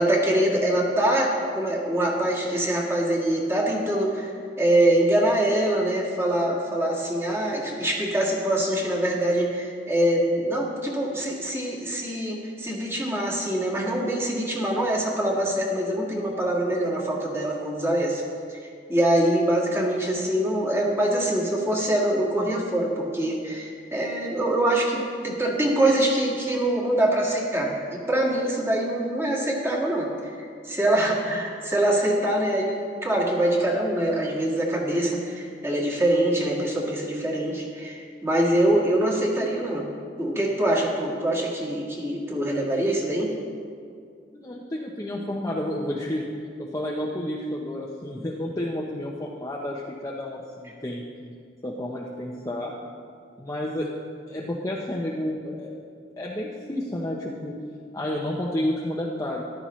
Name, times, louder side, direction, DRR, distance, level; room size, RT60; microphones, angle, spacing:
voice 1, 0.0-4.3 4.6-18.2 18.5-18.6 18.9-39.9 40.2-43.3, right 1 dB, 15° right, -3 dB, 1.7 m, -24 dB
voice 2, 44.3-46.2 46.6-51.1 51.6-52.7 53.4-53.9 54.3-55.7 56.2-57.5 57.9-59.4, left 1 dB, 20° left, -3 dB, 0.7 m, -30 dB
14.0 x 11.5 x 3.1 m, 2.2 s
head